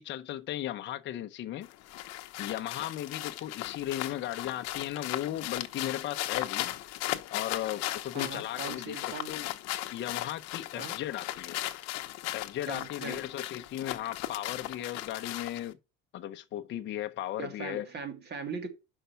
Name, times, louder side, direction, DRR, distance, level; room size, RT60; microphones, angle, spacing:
voice 1, 0.0-1.7 2.4-6.7 7.3-9.5 9.9-11.6 12.3-15.8 16.1-17.9, left 12 dB, 40° left, 0.7 m, -36 dB
sound 1, 1.6-15.7, left 15 dB, 60° left, 1.0 m, -37 dB
voice 2, 8.1-9.3 10.7-10.9 12.7-13.2 17.4-18.7, right 5 dB, 35° right, 2.0 m, -40 dB
5.7 x 5.5 x 6.7 m
cardioid pair, 150°, 29 cm